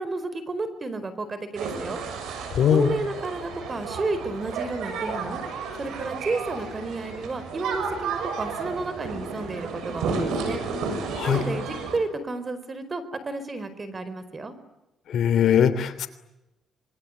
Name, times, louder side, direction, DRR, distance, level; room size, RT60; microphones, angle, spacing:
voice 1, 0.0-2.0 2.7-5.4 5.8-10.6 11.2-14.5, right 3 dB, 30° right, 13 dB, 4.6 m, -31 dB
sound 1, 1.6-12.0, right 4 dB, 85° right, 7.1 m, -32 dB
voice 2, 2.5-2.9 11.1-11.4 15.1-16.1, left 9 dB, 70° left, 12 dB, 3.2 m, -21 dB
26.5 x 22.5 x 9.8 m, 0.93 s
cardioid pair, 95°, 0 cm